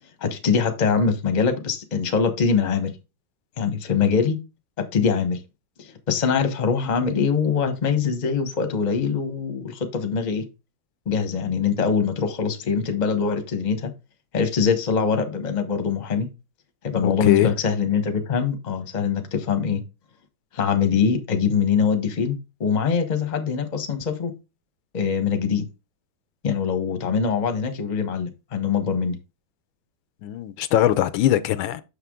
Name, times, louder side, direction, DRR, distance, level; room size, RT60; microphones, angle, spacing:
voice 1, 0.2-2.9 3.6-4.4 4.9-5.4 5.8-10.4 11.1-13.9 14.3-16.3 16.8-19.8 20.5-24.3 24.9-25.7 26.4-29.2, left 6 dB, 30° left, 0.9 m, -23 dB
voice 2, 17.0-17.5 27.1-27.2 30.2-31.8, left 12 dB, 85° left, 1.4 m, -21 dB
6.7 x 5.7 x 3.6 m
omnidirectional pair, 2.1 m